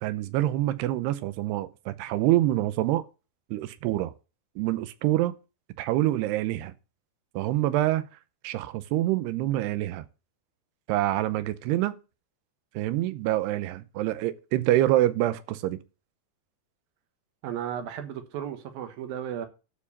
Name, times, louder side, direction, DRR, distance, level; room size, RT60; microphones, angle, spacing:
voice 1, 0.0-3.1 3.5-4.1 4.6-5.3 5.8-6.7 7.4-8.1 8.4-10.1 10.9-12.0 12.8-15.8, right 15 dB, 90° right, 2.8 m, -26 dB
voice 2, 17.4-19.5, right 9 dB, 70° right, 2.8 m, -34 dB
12.0 x 4.6 x 7.1 m
omnidirectional pair, 4.6 m